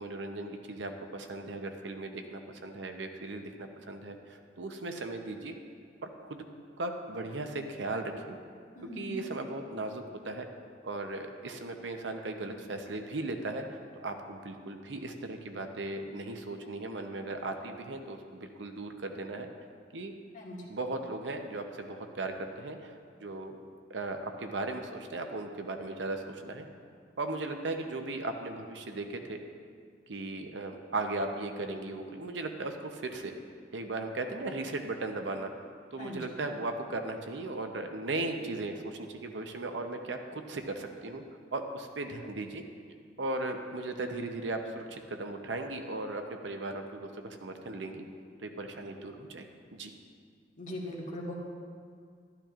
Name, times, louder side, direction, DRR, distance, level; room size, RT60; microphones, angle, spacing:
voice 1, 0.0-5.5 6.0-6.5 6.8-8.4 9.0-10.4 10.8-13.6 14.0-19.5 19.9-20.2 20.7-23.6 23.9-26.6 27.2-29.4 30.1-33.3 33.7-35.5 35.9-41.2 41.5-42.6 43.2-48.0 48.4-49.5 49.7-49.9, right 2 dB, 75° right, 5 dB, 0.7 m, -37 dB
voice 2, 8.7-9.1 20.3-20.6 36.0-36.2 50.6-51.3, left 1 dB, 45° left, -3 dB, 1.7 m, -40 dB
12.0 x 12.0 x 2.5 m, 2.1 s
head